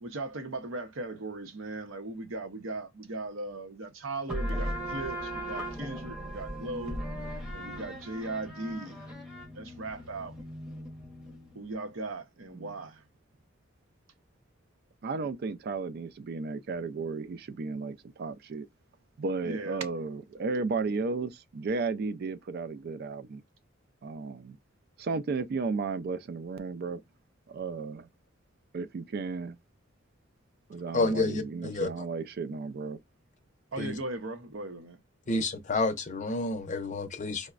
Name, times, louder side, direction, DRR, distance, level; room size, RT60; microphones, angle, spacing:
voice 1, 0.0-7.0 7.5-9.1 9.5-10.4 11.5-13.0 19.4-19.9 33.7-35.0 35.3-35.4, right 2 dB, 75° right, 0.7 m, -38 dB
sound 1, 4.3-11.6, equal, 5° right, 0.7 m, -38 dB
voice 2, 15.0-18.7 19.2-23.4 24.0-24.6 25.0-27.0 27.5-28.1 28.7-29.6 30.7-33.0, right 4 dB, 50° right, 0.4 m, -34 dB
voice 3, 30.9-31.9 33.8-34.0 35.3-37.5, left 2 dB, 40° left, 0.5 m, -29 dB
4.8 x 2.1 x 2.3 m
head